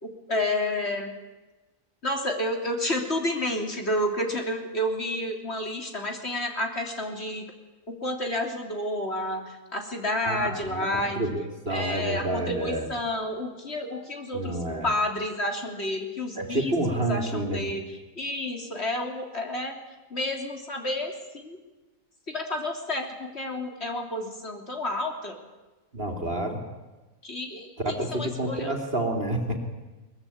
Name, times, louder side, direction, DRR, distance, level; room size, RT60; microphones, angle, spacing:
voice 1, 0.0-1.1 2.0-7.4 7.9-11.2 11.7-14.6 14.8-16.8 17.1-19.8 20.1-21.6 22.3-25.4 27.2-28.7, left 1 dB, 45° left, 3 dB, 3.4 m, -30 dB
voice 2, 10.2-10.9 11.1-12.9 14.3-14.9 16.4-17.7 25.9-26.6 27.8-29.6, right 1 dB, 40° right, 3 dB, 3.3 m, -29 dB
22.5 x 21.0 x 8.6 m, 1.1 s
omnidirectional pair, 1.5 m